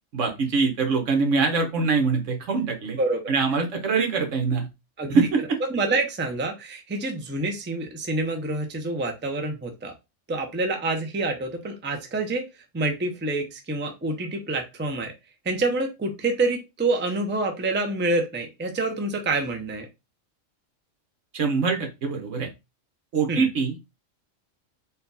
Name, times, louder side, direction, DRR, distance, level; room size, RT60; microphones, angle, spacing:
voice 1, 0.1-3.0 3.3-4.7 5.1-5.6 21.3-22.5 23.1-23.8, right 4 dB, 70° right, 3 dB, 1.4 m, -23 dB
voice 2, 3.0-3.3 5.0-5.2 5.7-9.9 10.3-12.5 12.7-15.1 15.4-19.9 23.3-23.5, right 2 dB, 10° right, 4 dB, 0.5 m, -27 dB
4.3 x 2.3 x 3.9 m, 0.24 s
omnidirectional pair, 1.3 m